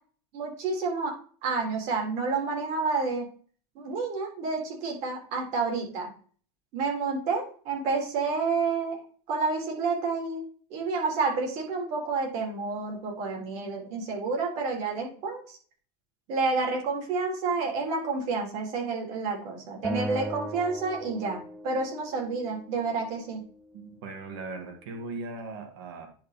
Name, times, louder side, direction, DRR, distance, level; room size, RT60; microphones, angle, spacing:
voice 1, 0.3-1.1 1.4-3.3 3.8-6.1 6.7-9.0 9.3-10.4 10.7-15.6 16.3-23.4, right 4 dB, 55° right, 0 dB, 3.6 m, -29 dB
Acoustic guitar, 19.8-23.1, equal, 5° right, 0.9 m, -38 dB
voice 2, 23.7-26.1, right 3 dB, 80° right, 2 dB, 2.2 m, -38 dB
10.0 x 4.0 x 4.3 m, 0.43 s
supercardioid pair, 130°, 14 cm